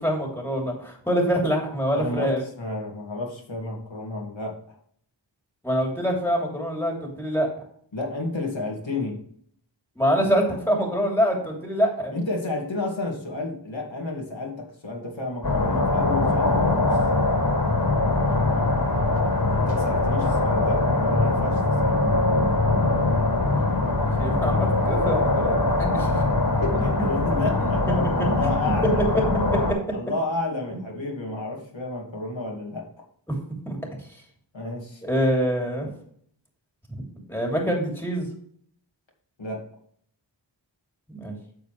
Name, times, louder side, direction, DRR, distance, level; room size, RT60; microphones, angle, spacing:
voice 1, 0.0-2.4 5.6-7.5 10.0-12.1 23.9-26.1 27.6-27.7 28.2-28.5 29.5-29.8 33.7-33.8 35.0-35.9 37.3-38.2 41.1-41.3, equal, 5° left, 0 dB, 2.9 m, -25 dB
voice 2, 1.9-4.8 7.9-9.2 12.1-17.0 19.7-22.2 26.1-26.2 26.6-29.1 29.9-32.9 34.5-35.0 39.4-39.6, left 2 dB, 75° left, -1 dB, 2.1 m, -31 dB
sound 1, 15.4-29.7, left 2 dB, 50° left, 2.6 m, -22 dB
9.4 x 6.8 x 3.2 m, 0.62 s
wide cardioid pair, 65°, 45 cm